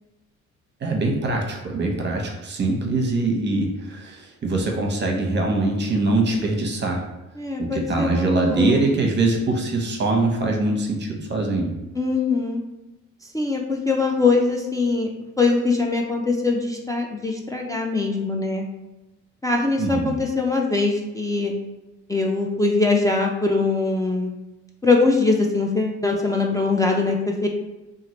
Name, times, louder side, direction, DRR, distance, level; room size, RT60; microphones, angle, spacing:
voice 1, 0.8-7.0 7.6-11.7 19.8-20.1, right 2 dB, 35° right, 1 dB, 0.7 m, -23 dB
voice 2, 7.4-8.9 11.9-12.6 13.3-15.1 15.4-18.6 19.4-21.5 22.1-24.3 24.8-27.5, left 3 dB, 10° left, -1 dB, 0.3 m, -22 dB
3.0 x 2.4 x 2.9 m, 1.0 s
cardioid pair, 90°, 30 cm